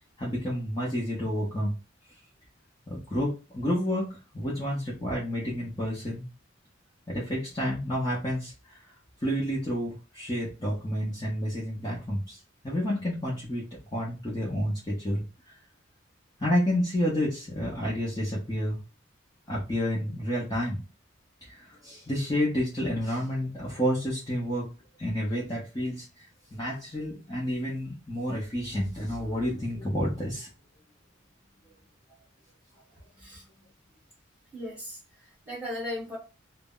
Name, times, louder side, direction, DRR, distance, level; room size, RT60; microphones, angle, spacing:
voice 1, 0.2-1.8 2.9-4.1 4.3-6.3 7.1-8.8 9.2-12.4 12.6-15.2 16.4-18.8 19.5-20.8 21.4-24.7 25.0-26.1 26.5-30.5, equal, 20° left, -6 dB, 0.6 m, -30 dB
voice 2, 34.5-36.2, left 1 dB, 5° right, -4 dB, 1.0 m, -37 dB
2.0 x 2.0 x 3.7 m, 0.30 s
head